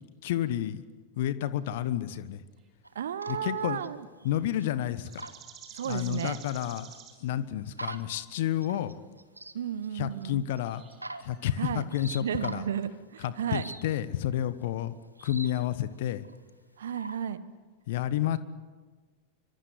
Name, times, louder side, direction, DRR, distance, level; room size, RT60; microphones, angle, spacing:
voice 1, 0.2-0.8 1.2-2.4 3.3-3.8 4.2-5.3 5.8-6.9 7.2-9.0 9.9-10.8 11.2-12.6 13.2-14.9 15.2-16.2 17.9-18.4, left 12 dB, 55° left, 15 dB, 1.2 m, -30 dB
sound 1, 2.8-5.4 5.6-7.0 7.7-9.5 9.8-9.9 10.2-10.3 10.6-10.7 10.9-11.5 11.9-12.8 13.5-13.8 14.3-14.6 15.0-15.5 16.2-16.4 16.9-17.2, right 2 dB, 85° right, 1.3 m, -42 dB
voice 2, 2.9-4.1 5.7-6.4 9.5-10.4 11.6-11.8 12.2-13.7 16.8-17.4, right 9 dB, 65° right, 15 dB, 1.3 m, -33 dB
sound 2, 3.6-3.8 4.3-4.4 5.0-7.2 8.4-8.6 10.7-11.7 12.1-12.2 12.8-12.9, right 8 dB, 30° right, 6.8 m, -50 dB
25.0 x 24.5 x 8.1 m, 1.4 s
figure-of-eight pair, 90°, 0 cm